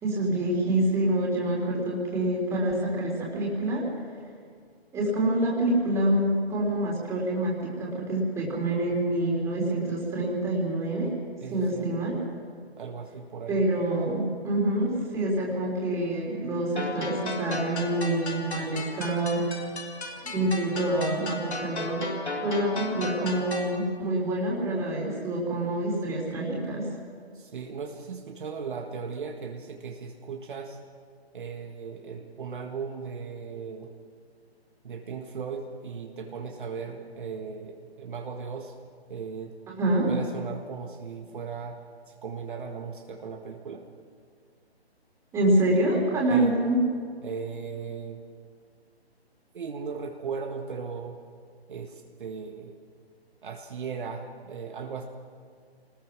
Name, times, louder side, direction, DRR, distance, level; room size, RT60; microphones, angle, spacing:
voice 1, 0.0-3.8 4.9-11.1 11.5-12.2 13.5-19.7 20.2-22.1 22.4-26.9 39.7-40.1 45.3-46.8, right 1 dB, 10° right, -3 dB, 3.6 m, -26 dB
voice 2, 11.4-11.9 12.8-13.6 27.4-30.8 31.3-33.9 34.8-38.7 39.1-39.6 40.1-41.8 42.1-43.9 46.3-46.6 47.2-48.2 49.5-51.2 51.7-52.8 53.4-55.0, right 5 dB, 50° right, 2 dB, 1.8 m, -37 dB
sound 1, 16.8-23.8, left 3 dB, 85° left, 4.0 m, -35 dB
25.0 x 20.0 x 6.1 m, 2.1 s
hypercardioid pair, 155°, 32 cm